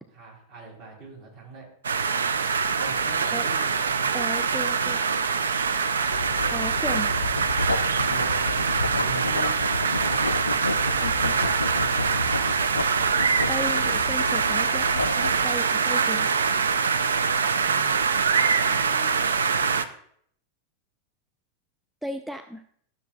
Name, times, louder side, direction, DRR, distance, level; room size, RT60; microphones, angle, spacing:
voice 1, 0.1-1.7 2.8-3.7 7.6-8.6 9.0-9.6 17.6-18.0 18.6-19.4, right 4 dB, 45° right, -2 dB, 3.3 m, -42 dB
sound 1, 1.8-19.8, right 5 dB, 70° right, 0.4 m, -24 dB
voice 2, 4.1-5.0 6.5-7.1 11.0-11.4 13.5-16.3 22.0-22.6, equal, 5° right, 9 dB, 0.4 m, -35 dB
Writing, 6.1-15.5, left 3 dB, 80° left, 0.4 m, -31 dB
12.0 x 6.6 x 2.3 m, 0.65 s
figure-of-eight pair, 90°, 0 cm